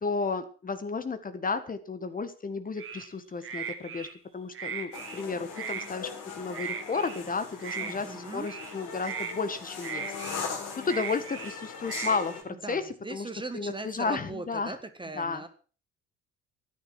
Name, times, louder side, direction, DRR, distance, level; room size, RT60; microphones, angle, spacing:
voice 1, 0.0-4.1 4.3-6.1 6.4-12.8 13.1-14.8 15.2-15.4, left 4 dB, 25° left, 10 dB, 1.7 m, -33 dB
sound 1, 2.8-3.1 3.4-4.1 4.5-5.2 5.5-5.9 6.5-7.2 7.6-7.9 8.4-8.7 9.0-9.3 9.8-10.4 10.8-11.5 11.8-12.2, right 7 dB, 40° right, 2.2 m, -37 dB
sound 2, 4.9-12.4, left 6 dB, 65° left, 3.9 m, -40 dB
voice 2, 7.8-8.5 12.5-15.5, right 2 dB, 15° right, 10 dB, 1.6 m, -39 dB
14.0 x 10.0 x 6.1 m, 0.40 s
figure-of-eight pair, 60°, 33 cm